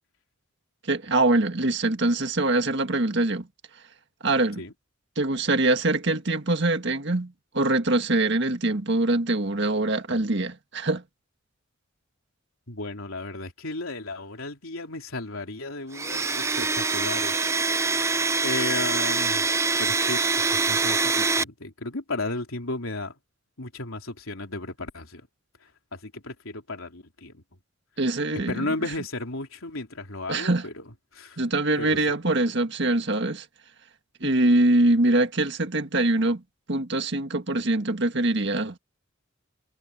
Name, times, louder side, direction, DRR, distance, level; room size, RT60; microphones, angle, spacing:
voice 1, 0.8-3.5 4.2-4.7 5.2-11.0 28.0-28.7 30.3-30.7 31.4-33.5 34.2-36.4 36.7-38.8, right 2 dB, 55° right, 1.8 m, -23 dB
voice 2, 12.7-17.4 18.4-19.4 19.8-23.1 23.6-25.2 25.9-27.4 28.5-30.7 31.1-31.4 31.8-32.0 34.2-34.4, left 2 dB, 85° left, 3.5 m, -34 dB
Domestic sounds home sounds, 15.9-21.4, right 4 dB, 15° right, 0.5 m, -24 dB
head